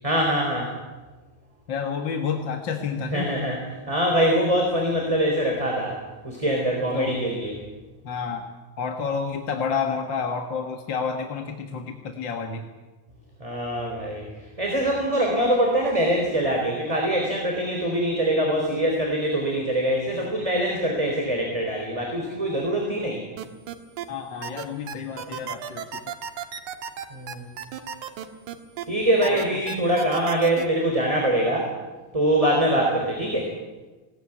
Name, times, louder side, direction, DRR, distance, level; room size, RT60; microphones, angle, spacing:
voice 1, 0.0-0.7 3.1-3.6 3.9-5.9 6.2-7.5 13.4-14.2 14.6-23.2 27.1-27.5 28.9-31.7 32.1-33.5, right 1 dB, 10° right, 0 dB, 3.6 m, -23 dB
voice 2, 1.7-3.3 6.8-7.1 8.0-8.5 8.8-12.7 24.1-26.1 29.3-29.7, left 6 dB, 45° left, 3 dB, 1.8 m, -30 dB
sound 1, 23.4-24.1 24.4-28.8 29.2-30.6, right 8 dB, 85° right, 2.9 m, -34 dB
20.0 x 17.5 x 9.3 m, 1.2 s
omnidirectional pair, 3.4 m